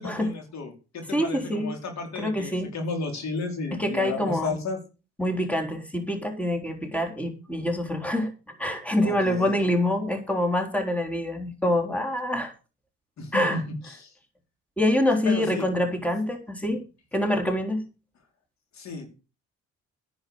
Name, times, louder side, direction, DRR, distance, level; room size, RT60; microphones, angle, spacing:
voice 1, 0.0-4.8 9.0-9.6 13.2-14.1 15.2-15.7 18.7-19.1, left 4 dB, 65° left, 4 dB, 4.4 m, -33 dB
voice 2, 1.1-1.7 2.2-2.7 3.8-4.6 5.2-8.3 8.6-12.5 13.3-13.6 14.8-16.8 17.1-17.8, left 1 dB, 5° left, 4 dB, 3.9 m, -25 dB
10.5 x 8.5 x 7.1 m, 0.32 s
cardioid pair, 90°, 30 cm